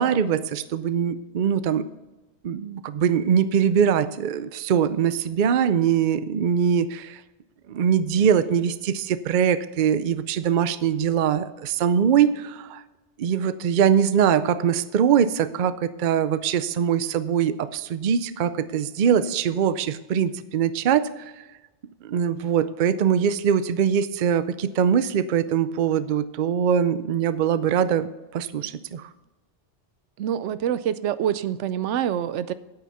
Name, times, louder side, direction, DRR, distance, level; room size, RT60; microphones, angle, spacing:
voice 1, 0.0-1.9 2.4-7.2 7.7-12.8 13.2-21.3 22.0-29.1, right 8 dB, 55° right, 14 dB, 0.6 m, -22 dB
voice 2, 30.2-32.5, right 10 dB, 85° right, 15 dB, 0.9 m, -26 dB
9.1 x 8.7 x 5.6 m, 1.1 s
omnidirectional pair, 1.2 m